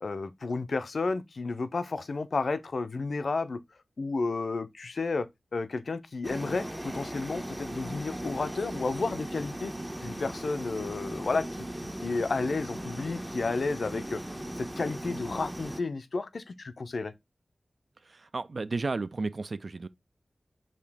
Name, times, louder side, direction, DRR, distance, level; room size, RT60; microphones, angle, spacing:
voice 1, 0.0-3.6 4.0-5.3 5.5-9.7 10.0-14.2 14.6-17.1, left 3 dB, 70° left, 0.4 m, -32 dB
sound 1, 6.2-15.8, right 1 dB, 10° right, 0.6 m, -38 dB
voice 2, 18.0-19.9, right 3 dB, 60° right, 0.3 m, -33 dB
5.0 x 2.8 x 3.4 m
cardioid pair, 45°, 0 cm